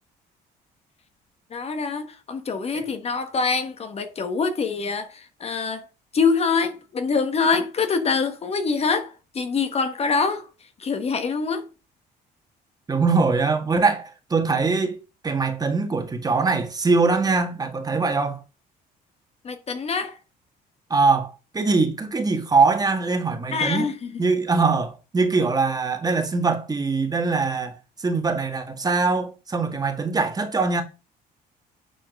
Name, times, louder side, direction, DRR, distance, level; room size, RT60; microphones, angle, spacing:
voice 1, 1.5-5.8 6.1-10.5 10.8-11.7 19.4-20.2 23.5-24.1, left 5 dB, 35° left, 1.1 m, -25 dB
voice 2, 12.9-18.4 20.9-23.9 24.2-30.8, right 4 dB, 20° right, 1.6 m, -22 dB
9.2 x 4.3 x 5.2 m
cardioid pair, 110°, 17 cm